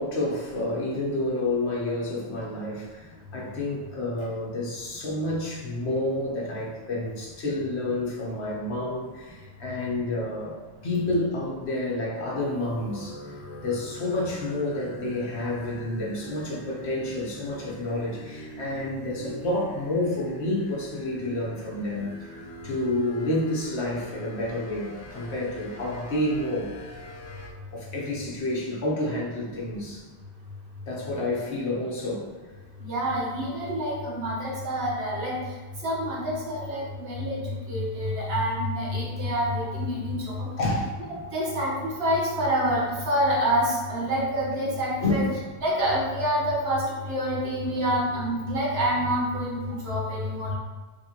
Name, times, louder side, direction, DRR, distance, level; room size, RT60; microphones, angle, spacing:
voice 1, 0.0-10.6 10.8-22.3 22.6-27.0 27.7-30.0 30.9-32.3 38.2-38.3 40.6-40.9 45.0-45.4 49.7-49.8, left 1 dB, 75° left, -4 dB, 1.3 m, -29 dB
sound 1, 12.4-27.5, left 1 dB, 55° left, 0.8 m, -43 dB
voice 2, 32.8-35.4 35.8-40.5 41.3-45.3 45.6-50.5, equal, 65° right, -5 dB, 1.3 m, -27 dB
4.5 x 3.2 x 2.9 m, 1.4 s
omnidirectional pair, 1.1 m